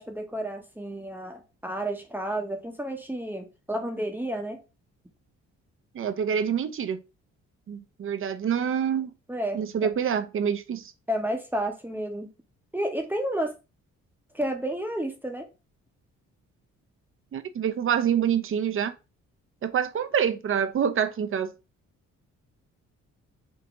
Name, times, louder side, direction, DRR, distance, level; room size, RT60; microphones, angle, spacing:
voice 1, 0.0-4.6 9.3-9.6 11.1-12.3 12.7-13.5 14.3-15.5, right 1 dB, 5° right, 0.9 m, -31 dB
voice 2, 5.9-7.0 7.7-9.1 9.5-10.9 17.3-19.0 19.6-21.5, right 8 dB, 45° right, 0.6 m, -26 dB
3.9 x 2.8 x 3.6 m
cardioid pair, 90°, 30 cm